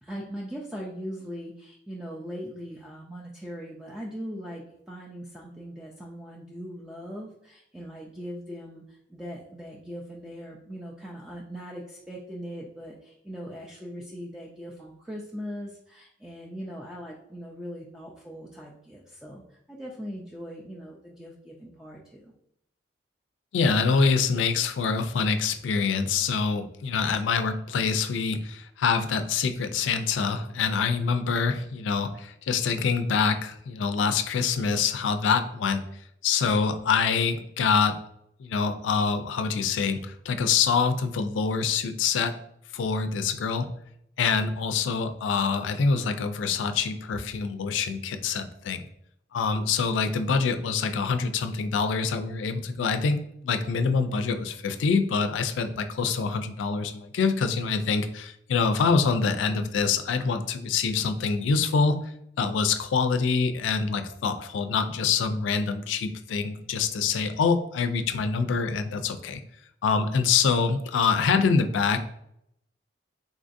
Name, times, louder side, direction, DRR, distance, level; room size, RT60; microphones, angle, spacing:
voice 1, 0.0-22.3, equal, 5° right, -4 dB, 0.3 m, -40 dB
voice 2, 23.5-35.8 36.2-38.0 38.4-42.3 42.7-43.7 44.2-48.8 49.3-62.0 62.4-69.4 69.8-72.0, left 5 dB, 90° left, 9 dB, 0.3 m, -25 dB
3.8 x 2.5 x 2.5 m, 0.76 s
head